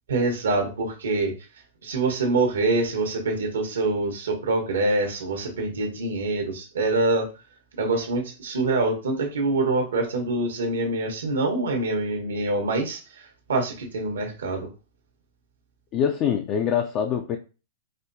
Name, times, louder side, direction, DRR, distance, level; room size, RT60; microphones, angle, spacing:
voice 1, 0.1-1.3 1.8-7.3 7.8-14.7, right 2 dB, 90° right, 1.1 m, -25 dB
voice 2, 15.9-17.4, left 8 dB, 35° left, 0.3 m, -24 dB
4.2 x 2.2 x 2.6 m
hypercardioid pair, 135°, 0 cm